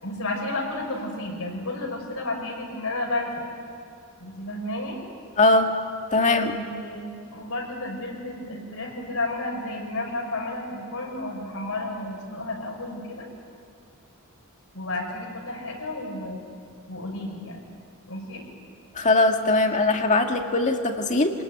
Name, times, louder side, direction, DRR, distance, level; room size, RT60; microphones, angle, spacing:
voice 1, 0.0-3.3 4.2-5.0 6.3-13.3 14.7-16.4 16.9-17.6 18.1-18.4, left 2 dB, 75° left, -1 dB, 6.0 m, -32 dB
voice 2, 5.4-5.7 6.1-6.6 19.0-21.3, left 2 dB, 35° left, 4 dB, 2.0 m, -20 dB
26.0 x 20.0 x 9.3 m, 2.6 s
head